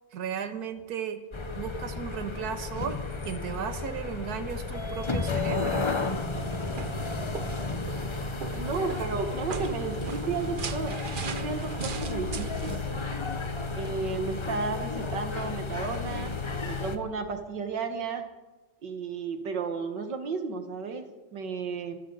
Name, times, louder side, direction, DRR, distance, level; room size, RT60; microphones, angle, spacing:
voice 1, 0.1-1.3 1.5-3.0 3.3-6.0, right 7 dB, 65° right, 8 dB, 1.7 m, -35 dB
sound 1, 1.3-17.0, left 3 dB, 25° left, 0.6 m, -33 dB
sound 2, 6.3-12.8, right 6 dB, 45° right, 0.7 m, -38 dB
voice 2, 8.5-11.0 11.2-12.7 13.7-16.3 16.6-18.3 18.8-21.0 21.3-22.0, right 4 dB, 90° right, 6 dB, 2.2 m, -33 dB
24.5 x 14.5 x 4.0 m, 1.2 s
omnidirectional pair, 1.8 m